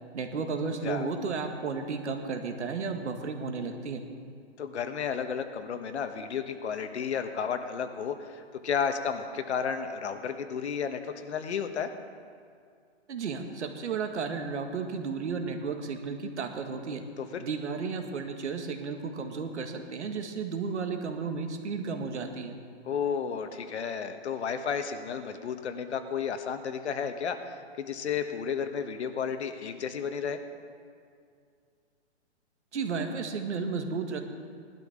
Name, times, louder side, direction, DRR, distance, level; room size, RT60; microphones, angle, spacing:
voice 1, 0.1-4.0 13.1-17.0 17.4-22.6 32.7-34.2, right 5 dB, 75° right, 5 dB, 1.8 m, -33 dB
voice 2, 4.6-11.9 17.2-17.4 22.8-30.4, left 7 dB, 70° left, 8 dB, 1.2 m, -32 dB
18.5 x 12.0 x 3.7 m, 2.2 s
hypercardioid pair, 165°, 35 cm